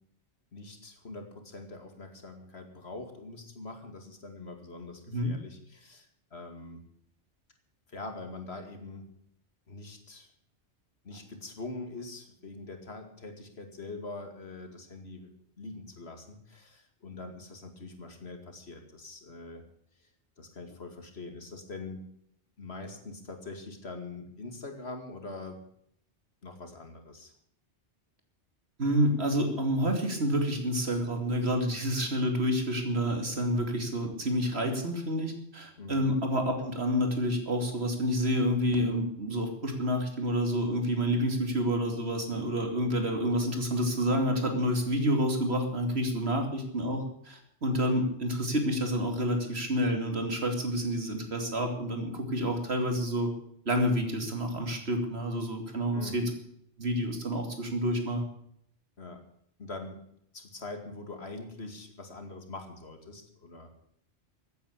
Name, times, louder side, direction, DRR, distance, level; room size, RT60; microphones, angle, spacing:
voice 1, 0.5-6.8 7.9-9.1 9.7-10.3 11.0-15.3 15.6-19.7 20.0-20.1 20.4-22.1 22.6-25.6 26.4-27.3 35.8-36.0 55.9-56.2 59.0-59.2 59.6-60.0 60.3-63.7, left 3 dB, 65° left, 6 dB, 2.6 m, -43 dB
voice 2, 28.8-53.3 53.6-56.3 56.8-58.2, equal, 65° right, 4 dB, 3.0 m, -29 dB
15.5 x 9.2 x 8.2 m, 0.69 s
omnidirectional pair, 1.2 m